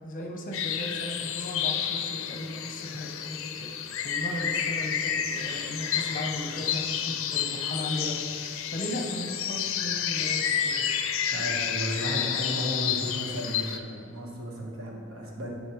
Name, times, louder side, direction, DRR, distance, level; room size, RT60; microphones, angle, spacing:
voice 1, 0.0-10.9, left 1 dB, 40° left, 1 dB, 0.8 m, -36 dB
sound 1, 0.5-13.8, left 8 dB, 65° left, 0.4 m, -30 dB
voice 2, 11.3-15.5, equal, 75° right, -2 dB, 1.3 m, -34 dB
8.1 x 5.4 x 3.1 m, 2.3 s
head